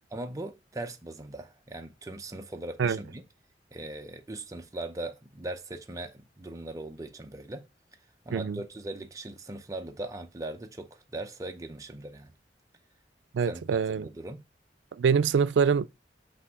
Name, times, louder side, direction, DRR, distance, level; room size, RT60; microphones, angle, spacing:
voice 1, 0.1-3.2 3.7-7.6 8.3-12.3 13.5-14.4, right 2 dB, 20° right, 0.6 m, -39 dB
voice 2, 13.3-14.1 14.9-15.9, right 6 dB, 90° right, 0.4 m, -25 dB
8.5 x 2.8 x 4.7 m
head